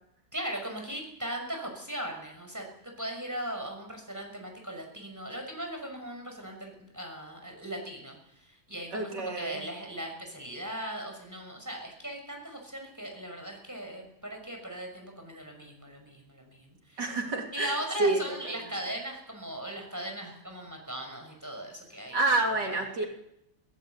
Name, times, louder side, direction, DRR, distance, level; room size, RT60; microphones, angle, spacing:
voice 1, 0.3-8.2 8.7-17.0 17.5-22.2 22.4-22.8, right 1 dB, 10° right, 2 dB, 6.3 m, -38 dB
voice 2, 8.9-9.6 17.0-18.6 22.1-23.0, right 2 dB, 85° right, 1 dB, 3.9 m, -29 dB
22.0 x 16.5 x 8.2 m, 0.80 s
omnidirectional pair, 1.8 m